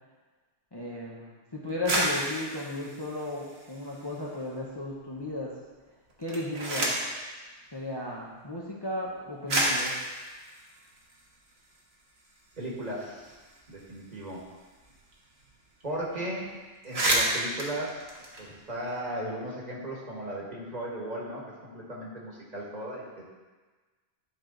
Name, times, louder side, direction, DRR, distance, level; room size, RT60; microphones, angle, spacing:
voice 1, 0.7-5.5 6.2-7.0 7.7-9.9, left 1 dB, 25° left, -4 dB, 0.9 m, -35 dB
sound 1, 1.7-4.3 4.6-5.3 6.1-7.2 8.2-8.3 9.1-9.2 9.5-11.8 12.2-12.3 12.5-15.1 15.4-15.5 15.8-16.1 16.4-16.5 16.7-19.0, right 1 dB, 70° right, 1.5 m, -31 dB
voice 2, 12.6-13.4 13.7-14.4 15.8-16.5 16.8-18.1 18.4-23.2, right 1 dB, 40° right, -4 dB, 1.5 m, -36 dB
9.9 x 4.7 x 3.9 m, 1.3 s
omnidirectional pair, 1.1 m